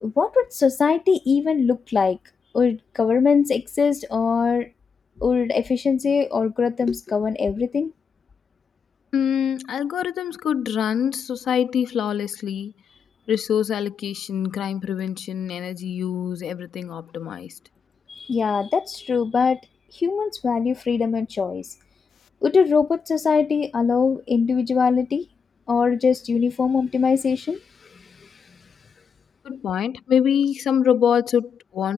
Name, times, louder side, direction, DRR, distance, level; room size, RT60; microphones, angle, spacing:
voice 1, 0.0-2.2 2.5-4.7 5.2-7.9 18.1-19.6 19.9-21.7 22.4-25.3 25.7-27.6 28.2-28.3, left 5 dB, 40° left, 0.4 m, -21 dB
voice 2, 9.1-12.7 13.3-17.6 29.4-31.9, left 8 dB, 80° left, 0.9 m, -24 dB
wide cardioid pair, 135°, 0 cm